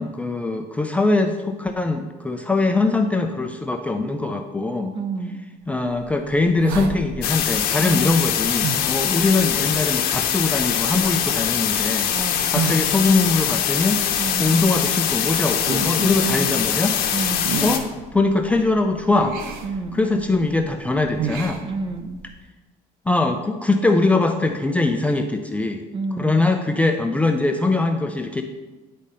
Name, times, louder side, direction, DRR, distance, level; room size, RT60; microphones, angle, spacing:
voice 1, 0.0-5.0 5.7-12.1 12.5-14.0 14.4-17.0 17.6-17.9 18.1-19.3 19.9-21.6 23.1-25.8 26.2-28.4, left 3 dB, 10° left, 4 dB, 0.4 m, -22 dB
voice 2, 4.9-5.5 7.8-8.2 12.1-12.5 14.2-14.6 16.0-16.7 17.1-17.6 19.6-20.1 21.6-22.2 25.9-26.5, right 3 dB, 35° right, 8 dB, 0.7 m, -29 dB
sound 1, 5.7-22.4, right 4 dB, 90° right, 0.9 m, -34 dB
sound 2, 7.2-17.8, left 9 dB, 90° left, 0.9 m, -23 dB
10.0 x 4.2 x 5.2 m, 1.2 s
cardioid pair, 155°, 15 cm